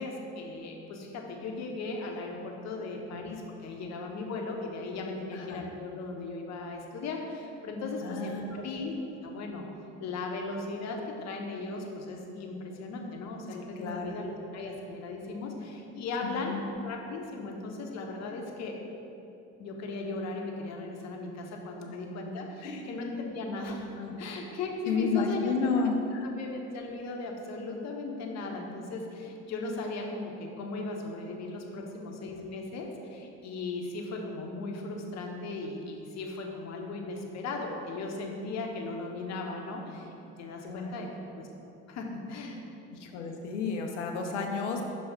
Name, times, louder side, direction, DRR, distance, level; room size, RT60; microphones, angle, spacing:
voice 1, 0.0-9.6 10.0-16.5 16.8-18.8 19.6-25.6 26.4-40.1 40.4-41.1 41.3-41.5 41.9-42.6, left 3 dB, 50° left, 1 dB, 1.0 m, -37 dB
voice 2, 5.3-5.6 8.0-8.6 13.8-14.2 16.2-16.6 22.6-22.9 24.0-24.2 24.9-26.3 40.6-41.0 42.9-44.8, left 4 dB, 80° left, 2 dB, 0.7 m, -32 dB
5.9 x 3.1 x 5.5 m, 2.8 s
hypercardioid pair, 60°, 35 cm